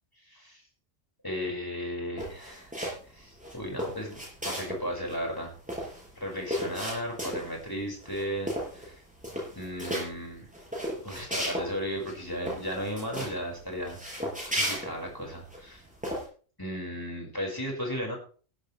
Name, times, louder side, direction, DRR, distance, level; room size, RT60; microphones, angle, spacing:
voice 1, 0.2-0.6 1.2-2.7 3.1-5.5 5.8-5.9 6.2-9.0 9.6-10.5 11.0-14.3 14.5-15.8 16.6-18.2, equal, 15° left, 0 dB, 5.2 m, -35 dB
sound 1, 2.2-3.1 3.4-4.8 5.1-5.2 5.4-7.6 8.0-8.2 8.5-8.9 9.2-10.0 10.5-11.7 12.0-12.1 12.4-13.3 13.8-15.6 16.0-16.2, equal, 5° right, 6.8 m, -34 dB
16.5 x 13.0 x 3.2 m, 0.40 s
omnidirectional pair, 1.3 m